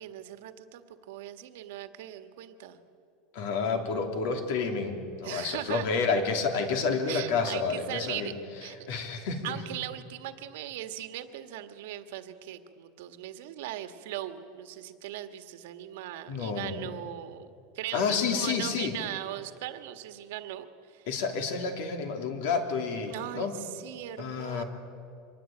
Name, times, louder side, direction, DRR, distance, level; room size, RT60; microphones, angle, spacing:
voice 1, 0.0-2.8 5.2-5.9 7.1-8.3 8.6-8.8 9.4-21.1 23.1-24.6, right 13 dB, 70° right, 8 dB, 1.6 m, -39 dB
voice 2, 3.3-8.3 8.9-9.6 16.3-16.8 17.9-18.9 21.1-23.5 24.2-24.6, left 5 dB, 60° left, 5 dB, 3.2 m, -29 dB
25.0 x 20.0 x 8.9 m, 2.6 s
supercardioid pair, 175°, 0 cm